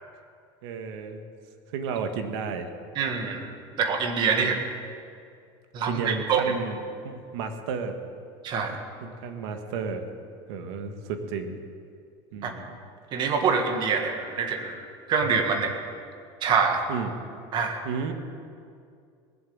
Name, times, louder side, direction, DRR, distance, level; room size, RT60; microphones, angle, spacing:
voice 1, 0.6-1.2 1.7-2.7 4.3-4.6 5.9-6.8 7.0-8.0 9.0-10.1 10.5-11.6 12.3-12.8 16.9-17.1 17.8-18.1, right 5 dB, 80° right, 6 dB, 1.7 m, -32 dB
voice 2, 3.0-3.5 3.8-4.6 5.7-6.5 8.4-8.8 12.4-12.5 13.1-14.8 15.1-15.8 16.4-16.8 17.5-17.8, right 5 dB, 35° right, 4 dB, 1.8 m, -25 dB
20.0 x 7.5 x 8.7 m, 2.3 s
cardioid pair, 165°, 13 cm